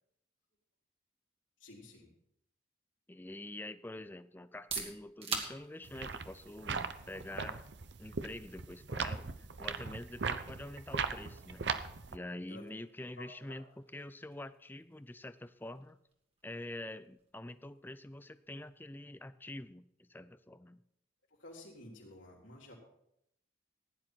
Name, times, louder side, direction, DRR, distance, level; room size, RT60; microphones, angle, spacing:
voice 1, 1.6-2.1 12.5-12.7 13.2-13.6 21.3-22.8, left 2 dB, 80° left, -3 dB, 3.7 m, -52 dB
voice 2, 3.1-7.7 8.0-11.6 12.1-13.6 13.9-16.0 16.4-20.8, left 1 dB, 10° left, 14 dB, 0.4 m, -46 dB
sound 1, 4.4-20.1, right 4 dB, 30° right, 1.9 m, -49 dB
sound 2, 5.9-12.2, right 5 dB, 60° right, 0.7 m, -39 dB
15.5 x 10.0 x 4.5 m, 0.77 s
head